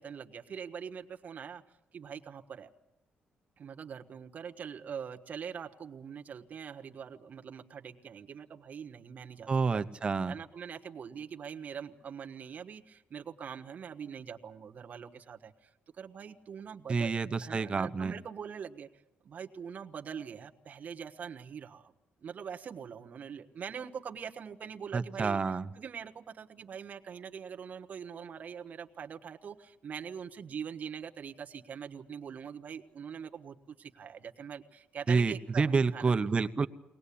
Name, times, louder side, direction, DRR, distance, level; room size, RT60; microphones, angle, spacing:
voice 1, 0.0-1.6 1.9-2.7 3.6-9.9 10.3-15.7 16.0-18.9 19.2-21.9 22.2-36.1, right 7 dB, 45° right, 5 dB, 1.4 m, -43 dB
voice 2, 9.5-10.3 16.9-18.1 24.9-25.7 35.1-36.7, right 4 dB, 30° right, 9 dB, 0.9 m, -28 dB
23.5 x 19.0 x 8.6 m, 0.91 s
cardioid pair, 130°, 4 cm